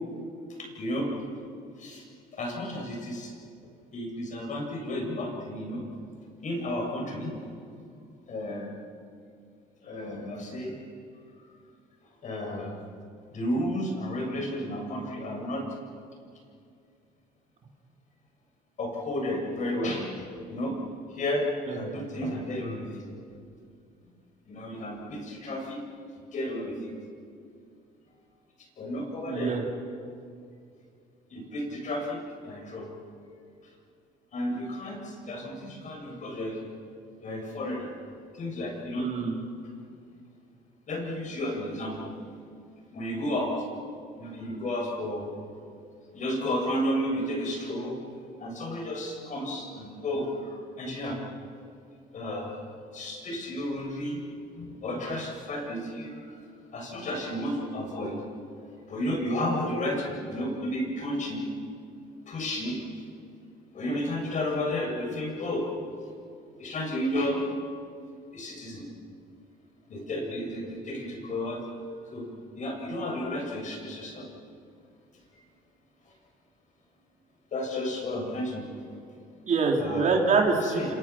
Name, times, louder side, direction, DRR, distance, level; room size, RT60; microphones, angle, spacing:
voice 1, 0.6-1.1 1.8-2.1 2.4-3.3 3.9-5.8 6.4-7.3 8.3-8.8 9.8-10.8 12.2-12.7 13.3-15.6 18.8-20.8 21.1-23.0 24.5-25.8 26.3-26.9 28.8-29.6 31.3-32.9 34.3-36.6 37.2-37.9 38.3-39.1 40.9-42.1 42.9-43.6 44.1-45.3 46.1-48.0 48.4-51.2 52.1-52.7 52.9-54.2 54.6-56.3 56.7-58.2 58.9-61.5 62.3-63.0 63.7-65.7 66.6-67.4 68.3-68.8 69.9-71.6 72.1-72.3 72.5-74.3 77.5-78.7 79.8-80.2 80.6-81.0, left 1 dB, 45° left, 0 dB, 7.7 m, -32 dB
voice 2, 29.3-29.6 39.0-39.5 79.5-80.9, right 4 dB, 45° right, 1 dB, 3.9 m, -25 dB
27.5 x 27.5 x 6.2 m, 2.4 s
cardioid pair, 110°, 17 cm